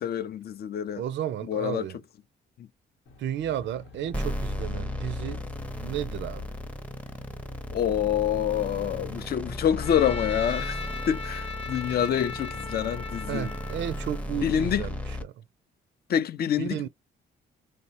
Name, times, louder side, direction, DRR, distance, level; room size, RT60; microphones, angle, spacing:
voice 1, 0.0-1.0 1.5-1.8 2.6-2.7 7.7-10.8 11.1-13.5 14.4-14.9 16.1-16.9, left 9 dB, 50° left, 0.4 m, -27 dB
voice 2, 1.0-2.0 3.2-5.4 5.8-6.5 13.3-15.4 16.6-16.9, right 10 dB, 65° right, 0.4 m, -33 dB
Aircraft, 3.1-9.8, left 4 dB, 75° left, 0.8 m, -48 dB
sound 1, 4.1-15.2, left 1 dB, 5° left, 0.6 m, -35 dB
Trumpet, 9.8-14.2, left 5 dB, 25° left, 0.9 m, -38 dB
3.2 x 2.1 x 2.6 m
cardioid pair, 75°, 20 cm